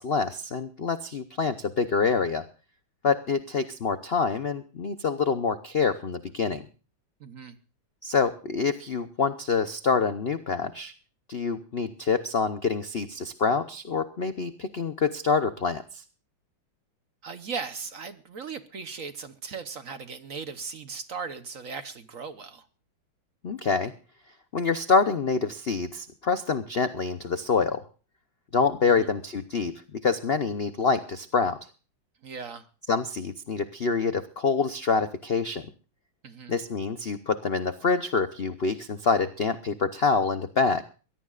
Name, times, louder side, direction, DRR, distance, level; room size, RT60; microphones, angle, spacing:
voice 1, 0.0-2.4 3.0-6.7 8.0-10.9 11.3-16.0 23.4-23.9 24.5-27.8 28.5-31.6 32.9-35.7 36.5-40.8, left 5 dB, 75° left, 11 dB, 0.5 m, -26 dB
voice 2, 7.2-7.6 17.2-22.7 28.9-29.1 32.2-32.7 36.2-36.6, right 5 dB, 50° right, 11 dB, 1.1 m, -38 dB
23.5 x 17.0 x 2.4 m, 0.35 s
omnidirectional pair, 2.3 m